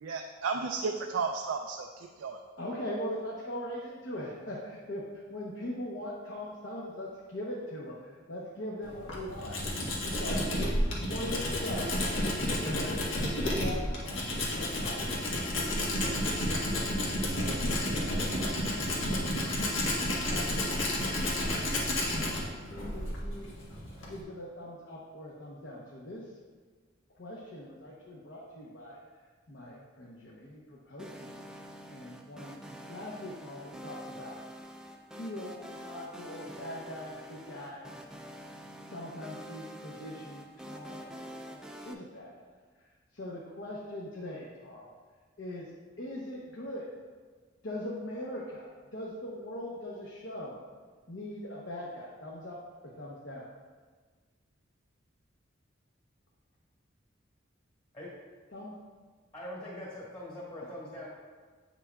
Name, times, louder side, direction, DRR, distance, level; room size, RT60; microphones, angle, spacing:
voice 1, 0.0-1.9 2.2-2.4, right 4 dB, 80° right, 3 dB, 0.4 m, -33 dB
voice 2, 2.6-9.6 10.1-11.9 12.6-16.8 17.3-21.5 22.0-23.5 24.1-26.4 27.1-29.0 29.5-31.3 31.9-32.6 32.9-34.4 35.1-38.0 38.9-42.5 42.8-44.9 45.4-45.7 46.0-46.9 47.6-50.6 51.1-52.6 53.0-53.5 58.5-58.8, left 1 dB, 65° left, -4 dB, 0.9 m, -41 dB
Tools, 8.8-24.2, left 1 dB, 85° left, 1.3 m, -31 dB
sound 1, 31.0-41.9, equal, 5° right, 0.3 m, -46 dB
voice 3, 59.3-61.1, left 1 dB, 25° left, -8 dB, 1.4 m, -42 dB
8.3 x 6.0 x 2.3 m, 1.5 s
head